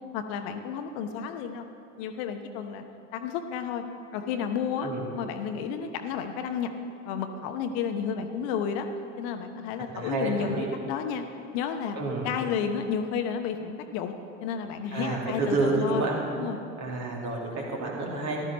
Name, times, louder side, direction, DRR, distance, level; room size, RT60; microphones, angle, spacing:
voice 1, 0.1-1.6 2.0-2.8 3.1-3.8 4.1-6.7 7.0-8.9 9.2-11.2 11.5-12.0 12.2-14.1 14.4-16.6, left 7 dB, 55° left, 7 dB, 0.9 m, -31 dB
voice 2, 9.8-10.7 12.0-12.3 14.9-16.2 16.8-18.4, right 2 dB, 50° right, -2 dB, 2.7 m, -29 dB
14.5 x 12.0 x 4.1 m, 2.5 s
figure-of-eight pair, 60°, 36 cm